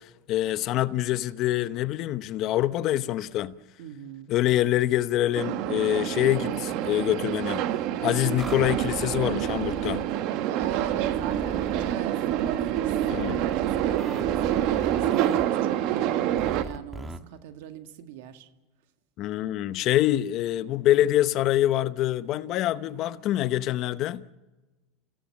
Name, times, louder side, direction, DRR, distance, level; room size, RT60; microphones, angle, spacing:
voice 1, 0.0-3.6 4.3-7.7 8.0-10.1 13.1-13.4 19.2-24.3, left 13 dB, 45° left, 0.8 m, -25 dB
voice 2, 3.8-4.3 10.5-18.5, right 11 dB, 75° right, 1.9 m, -40 dB
sound 1, 5.3-16.6, right 11 dB, 55° right, 1.3 m, -27 dB
sound 2, 8.4-10.1 10.6-11.9 12.3-15.4 16.4-17.2, right 2 dB, 15° right, 1.4 m, -39 dB
29.5 x 16.0 x 7.5 m
supercardioid pair, 135°, 0 cm